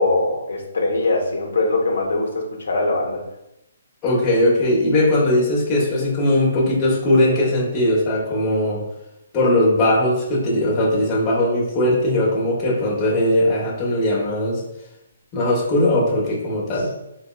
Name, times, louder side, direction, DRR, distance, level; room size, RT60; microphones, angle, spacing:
voice 1, 0.0-3.2, left 2 dB, 75° left, -1 dB, 0.7 m, -21 dB
voice 2, 4.0-8.8 9.3-14.6 15.3-16.9, left 1 dB, 20° left, -5 dB, 0.8 m, -19 dB
4.2 x 2.1 x 2.2 m, 0.86 s
hypercardioid pair, 160°, 0 cm